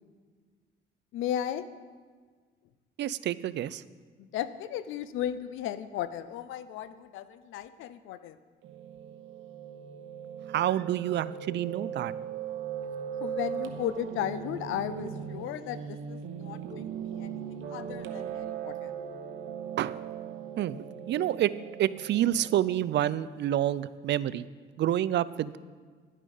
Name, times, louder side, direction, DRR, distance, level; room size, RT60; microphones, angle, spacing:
voice 1, 1.1-1.6 4.2-8.4 13.2-18.9, left 11 dB, 90° left, 14 dB, 0.6 m, -35 dB
voice 2, 3.0-3.8 10.5-12.1 19.8-20.0 20.6-20.8 21.1-21.5 21.8-24.5 24.8-25.6, right 12 dB, 65° right, 17 dB, 0.4 m, -28 dB
Piano, 8.6-23.1, right 8 dB, 85° right, 0.9 m, -39 dB
11.0 x 8.4 x 5.4 m, 1.6 s
cardioid pair, 90°, 20 cm